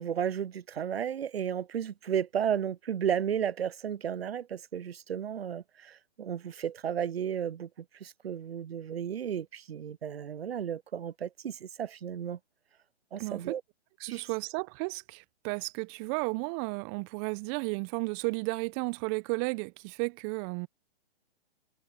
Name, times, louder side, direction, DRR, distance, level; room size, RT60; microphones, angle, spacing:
voice 1, 0.0-7.7 8.0-12.4 13.1-13.6 14.1-14.2, right 8 dB, 70° right, 0.7 m, -33 dB
voice 2, 13.2-13.6 14.0-20.7, right 32 dB, 25° right, 1.3 m, -33 dB
figure-of-eight pair, 130°, 31 cm